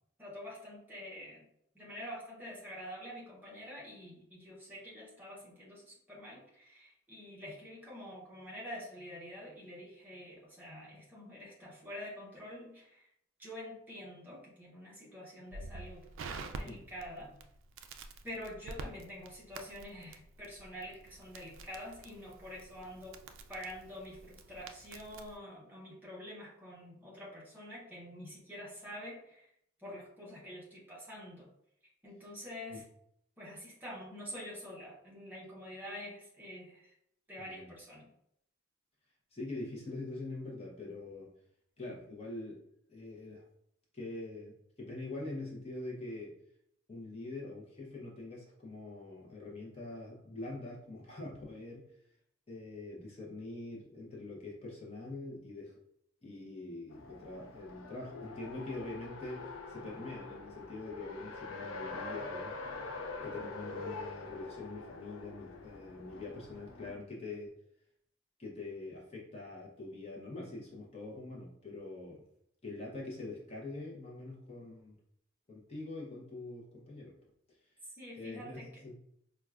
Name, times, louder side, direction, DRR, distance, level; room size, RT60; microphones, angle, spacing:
voice 1, 0.2-1.5 1.7-13.1 13.4-16.0 16.3-17.3 18.2-23.2 23.5-29.5 29.8-31.5 32.0-32.8 33.4-36.9 37.3-38.1 77.9-78.8, equal, 10° right, -5 dB, 0.7 m, -47 dB
Crackle, 15.5-25.4, right 3 dB, 70° right, 0.3 m, -48 dB
voice 2, 37.4-37.7 39.3-41.3 41.8-42.6 42.9-43.4 43.9-46.3 46.9-51.9 52.5-55.7 56.2-62.8 63.2-67.5 68.4-72.2 72.6-75.0 75.5-77.1 77.5-77.6 78.2-79.0, left 2 dB, 30° left, -4 dB, 0.7 m, -44 dB
Race car auto racing, 56.9-66.9, left 3 dB, 75° left, 0.4 m, -45 dB
4.5 x 2.2 x 2.3 m, 0.74 s
head